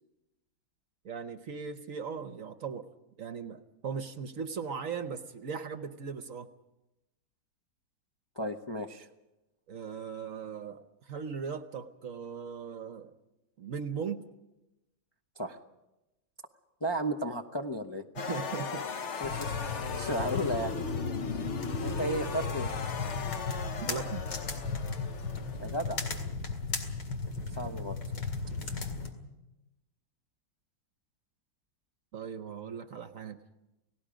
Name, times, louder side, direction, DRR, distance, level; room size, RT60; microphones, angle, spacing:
voice 1, 1.0-2.9 3.2-6.5 9.7-13.1 13.6-14.2 18.2-18.8 23.8-24.3 32.1-33.4, right 6 dB, 55° right, 10 dB, 1.1 m, -38 dB
voice 2, 8.4-9.1 15.4-15.6 16.8-18.0 19.2-20.7 21.8-22.7 25.6-26.0 27.6-28.0, right 1 dB, 25° left, 3 dB, 0.5 m, -34 dB
sound 1, 18.2-26.3, left 5 dB, 45° left, 1.1 m, -38 dB
sound 2, 19.2-29.1, left 4 dB, 75° left, 3.0 m, -36 dB
30.0 x 18.0 x 5.1 m, 0.97 s
omnidirectional pair, 1.9 m